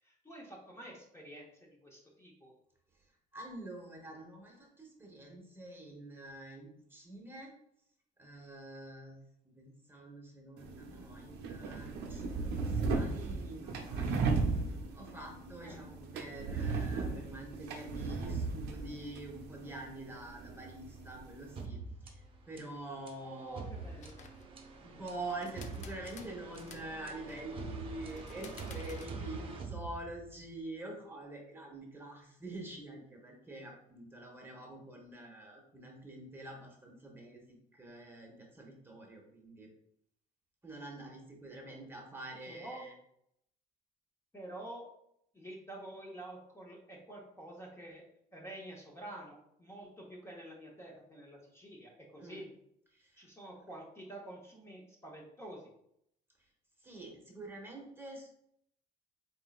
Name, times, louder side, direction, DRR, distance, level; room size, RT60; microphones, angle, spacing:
voice 1, 0.0-2.5 15.6-15.8 23.2-24.1 41.6-41.8 42.5-42.8 44.3-44.9 45.3-48.0 48.3-52.5 53.2-55.7, right 1 dB, 15° left, -2 dB, 0.9 m, -48 dB
voice 2, 3.3-7.5 8.2-9.2 9.4-14.3 14.9-23.6 24.8-39.7 40.6-42.9 52.2-52.4 52.9-53.3 56.8-58.3, right 2 dB, 15° right, 0 dB, 1.0 m, -46 dB
sound 1, 10.6-21.7, right 4 dB, 80° right, 0.6 m, -36 dB
sound 2, 21.6-30.5, right 4 dB, 30° right, 0.7 m, -45 dB
sound 3, 23.7-24.6 25.3-26.9 27.2-27.6 28.0-29.1, left 6 dB, 45° left, 0.5 m, -54 dB
3.9 x 3.7 x 2.3 m, 0.73 s
cardioid pair, 110°, 17 cm